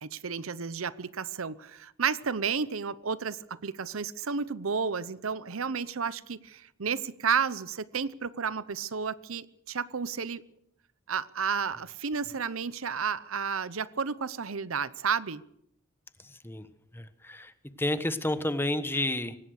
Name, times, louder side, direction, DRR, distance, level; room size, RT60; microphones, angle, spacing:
voice 1, 0.0-10.4 11.1-15.4, right 6 dB, 75° right, 0.8 m, -32 dB
voice 2, 16.3-16.7 16.9-17.5 17.8-19.4, left 1 dB, 10° left, 1.2 m, -30 dB
24.0 x 18.0 x 6.5 m
head